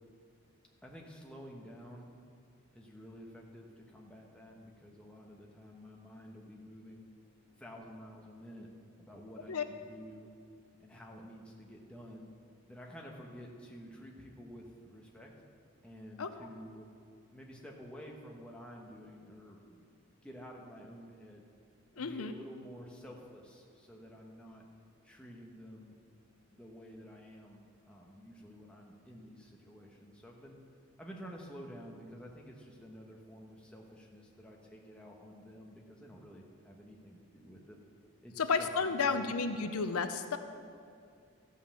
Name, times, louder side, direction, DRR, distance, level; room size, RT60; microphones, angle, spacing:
voice 1, 0.8-2.1 2.7-7.1 7.5-8.7 9.0-10.3 10.8-12.3 12.7-15.3 15.8-16.9 17.3-19.9 20.2-21.4 21.9-24.6 25.0-25.9 26.5-27.6 27.9-30.6 31.0-37.8 38.2-39.7, equal, 5° left, -2 dB, 1.2 m, -50 dB
voice 2, 22.0-22.3 38.4-40.4, left 4 dB, 90° left, 8 dB, 0.7 m, -32 dB
13.5 x 5.6 x 7.4 m, 2.3 s
head